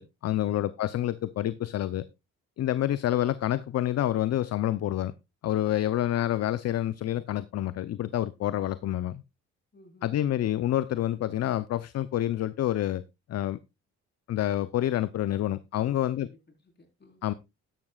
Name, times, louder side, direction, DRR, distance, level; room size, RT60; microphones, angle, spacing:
voice 1, 0.0-2.1 2.6-5.1 5.4-9.2 10.0-13.0 13.3-13.6 14.3-16.3 17.2-17.3, left 12 dB, 55° left, 0.6 m, -28 dB
voice 2, 9.7-10.1 15.7-17.2, left 2 dB, 35° left, 4.0 m, -56 dB
12.5 x 11.0 x 2.3 m
cardioid pair, 90°, 30 cm